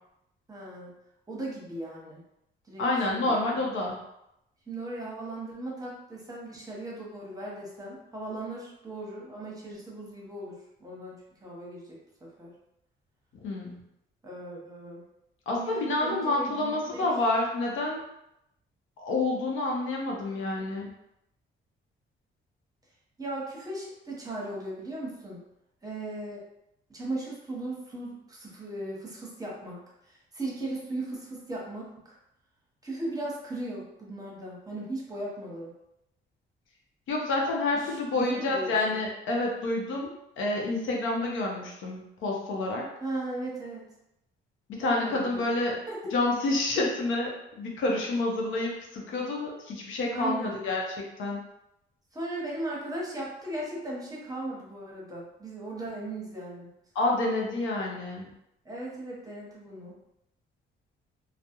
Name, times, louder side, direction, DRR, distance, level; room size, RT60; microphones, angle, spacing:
voice 1, 0.5-0.9 1.3-2.2 2.7-2.8 3.1-3.6 4.7-12.5 14.2-15.0 15.6-17.1 23.2-25.4 25.8-26.4 26.9-32.2 32.8-35.7 37.7-39.0 43.0-43.9 44.8-45.5 45.9-46.1 50.1-50.6 52.1-56.7 58.6-59.9, right 2 dB, 20° right, -4 dB, 0.8 m, -37 dB
voice 2, 2.8-3.9 13.4-13.8 15.5-18.0 19.0-20.9 37.1-40.1 40.4-42.8 44.7-45.7 46.1-50.8 51.2-51.4 56.9-58.2, left 2 dB, 80° left, -1 dB, 0.6 m, -28 dB
2.2 x 2.0 x 2.8 m, 0.83 s
cardioid pair, 90°, 20 cm